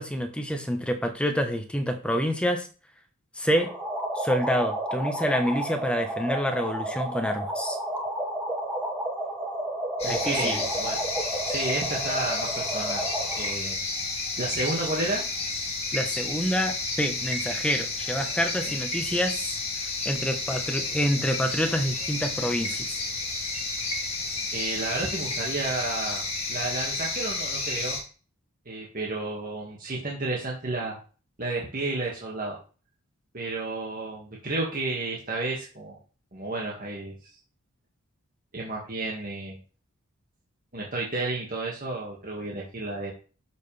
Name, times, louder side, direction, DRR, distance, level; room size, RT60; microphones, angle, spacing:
voice 1, 0.0-2.7 3.4-3.7 4.1-7.8 10.0-10.6 15.9-19.6 20.0-22.9, equal, 5° left, 5 dB, 1.2 m, -27 dB
sound 1, 3.6-13.5, right 1 dB, 10° right, 2.3 m, -31 dB
sound 2, 10.0-28.0, left 3 dB, 30° left, 2.6 m, -31 dB
voice 2, 10.0-11.0 11.4-13.0 13.3-13.8 14.4-15.2 18.7-18.8 24.5-26.2 26.5-28.0 28.7-31.0 31.4-32.6 33.3-36.0 36.3-37.1 38.5-39.6 40.7-43.1, right 2 dB, 40° right, -3 dB, 2.1 m, -31 dB
12.5 x 6.6 x 3.4 m, 0.36 s
head